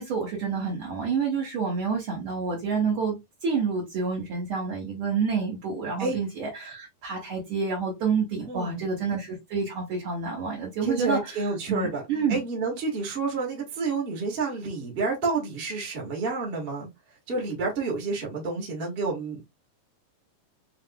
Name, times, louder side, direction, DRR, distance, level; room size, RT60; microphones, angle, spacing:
voice 1, 0.0-11.4 11.7-12.4, right 5 dB, 55° right, 1.6 m, -28 dB
voice 2, 8.5-8.8 10.8-12.0 12.3-16.9 17.3-19.4, right 4 dB, 35° right, 0.9 m, -29 dB
6.8 x 2.4 x 2.2 m
omnidirectional pair, 3.9 m